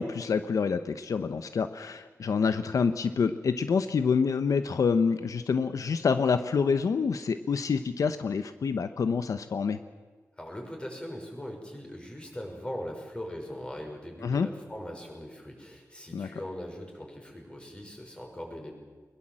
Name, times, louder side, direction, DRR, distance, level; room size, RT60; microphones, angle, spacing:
voice 1, 0.0-9.8 14.2-14.5 16.1-16.3, left 5 dB, 75° left, 10 dB, 0.9 m, -27 dB
voice 2, 10.4-18.7, equal, 15° left, 1 dB, 5.9 m, -40 dB
23.0 x 21.5 x 7.6 m, 1.4 s
wide cardioid pair, 115°, 6 cm